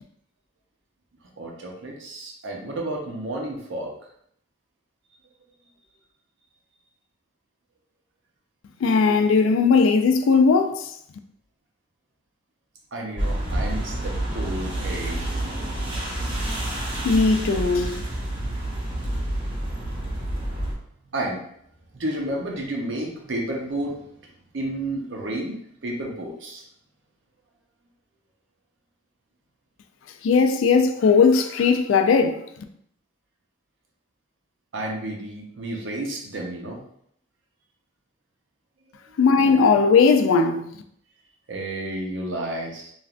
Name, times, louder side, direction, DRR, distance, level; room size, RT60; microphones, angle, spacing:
voice 1, 1.4-3.9 12.9-15.3 19.0-19.1 21.1-21.4 21.9-24.3 24.5-26.6 34.7-36.8 41.5-42.9, right 1 dB, 70° right, 0.7 m, -31 dB
voice 2, 8.8-10.8 17.0-18.0 30.2-32.4 39.2-40.7, left 5 dB, 80° left, 0.3 m, -18 dB
sound 1, 13.2-20.7, right 1 dB, 25° right, 0.7 m, -28 dB
3.2 x 2.5 x 2.4 m
head